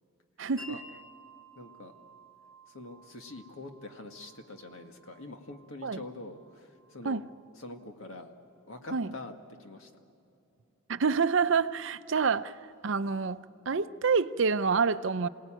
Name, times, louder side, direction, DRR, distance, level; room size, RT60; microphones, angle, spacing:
voice 1, 0.4-0.8 5.8-6.0 7.0-7.2 8.9-9.1 10.9-12.6 12.8-15.3, right 5 dB, 65° right, 0.6 m, -27 dB
Wind chime, 0.6-8.2, equal, 20° left, 4.0 m, -54 dB
voice 2, 1.6-1.9 2.7-7.2 7.6-8.3 8.6-9.3 9.6-9.9, left 2 dB, 80° left, 1.9 m, -45 dB
28.5 x 18.0 x 9.0 m
head